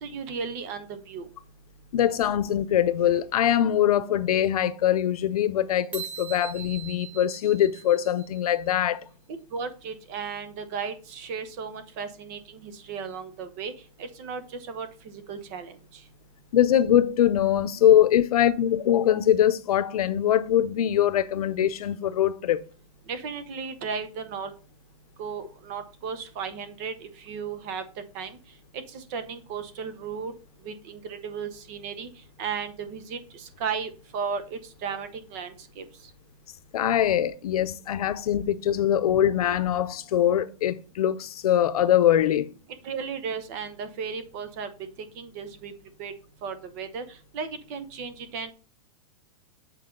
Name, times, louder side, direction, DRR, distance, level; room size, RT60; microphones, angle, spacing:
voice 1, 0.0-1.3 9.3-13.7 14.0-15.7 23.1-24.5 25.2-27.8 28.1-28.3 28.7-30.3 30.6-32.1 32.4-35.8 42.8-44.7 45.2-45.7 46.0-46.1 46.4-47.0 47.3-48.5, right 6 dB, 30° right, 0.7 m, -35 dB
voice 2, 1.9-9.0 16.5-22.6 36.7-42.5, left 11 dB, 90° left, 0.7 m, -22 dB
sound 1, 5.9-8.5, right 9 dB, 10° right, 0.3 m, -41 dB
7.7 x 4.5 x 3.7 m
supercardioid pair, 175°, 19 cm